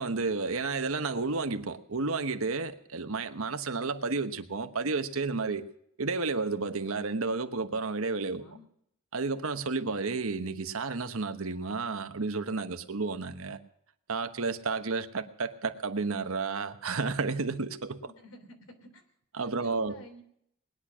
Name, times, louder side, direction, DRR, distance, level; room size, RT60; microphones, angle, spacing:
voice 1, 0.0-5.7 6.0-8.4 9.1-13.6 14.1-18.0 19.3-20.0, right 4 dB, 80° right, 1.2 m, -31 dB
voice 2, 8.2-8.6 18.0-19.0 19.4-20.2, left 1 dB, 85° left, 3.2 m, -53 dB
20.0 x 10.5 x 6.2 m
head